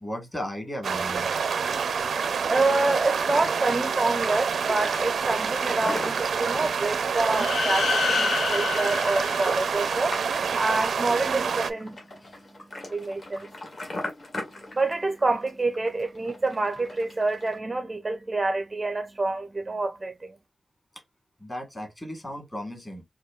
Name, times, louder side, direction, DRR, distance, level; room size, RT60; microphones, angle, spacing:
voice 1, 0.0-1.3 12.2-12.4 21.4-23.0, equal, 15° left, 1.4 m, -36 dB
sound 1, 0.8-11.7, right 6 dB, 90° right, 0.5 m, -27 dB
sound 2, 1.2-17.6, left 1 dB, 40° left, 1.4 m, -42 dB
voice 2, 2.5-10.2 10.6-12.0 12.9-13.5 14.7-20.3, right 3 dB, 20° right, 0.4 m, -27 dB
sound 3, 7.3-10.2, left 5 dB, 80° left, 0.4 m, -28 dB
4.8 x 2.2 x 2.4 m
wide cardioid pair, 170°, 0 cm